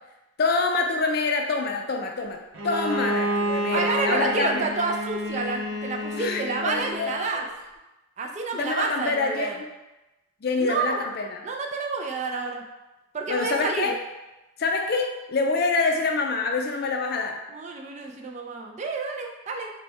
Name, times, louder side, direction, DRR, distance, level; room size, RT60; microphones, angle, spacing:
voice 1, 0.4-2.4 2.6-4.7 6.1-7.4 8.5-9.7 10.4-11.4 13.3-14.0 14.6-17.4, left 3 dB, 50° left, 2 dB, 0.4 m, -26 dB
Bowed string instrument, 2.5-7.2, equal, 85° right, 0.6 m, -29 dB
voice 2, 3.7-7.4 8.2-9.5 10.5-11.0 11.4-12.6 13.1-13.9 17.5-19.7, right 4 dB, 35° right, 2 dB, 0.3 m, -29 dB
3.3 x 2.2 x 4.3 m, 1.0 s
head